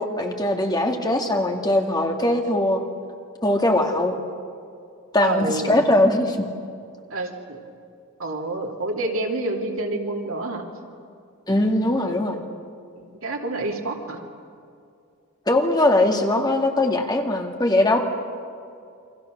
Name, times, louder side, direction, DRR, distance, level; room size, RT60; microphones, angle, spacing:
voice 1, 0.0-2.8 3.4-4.2 5.1-6.5 11.5-12.4 15.5-18.0, left 1 dB, 20° left, 2 dB, 2.1 m, -21 dB
voice 2, 5.2-5.8 7.1-7.6 8.2-10.6 13.0-14.2, right 2 dB, 70° right, 1 dB, 3.1 m, -28 dB
29.0 x 24.5 x 6.6 m, 2.4 s
head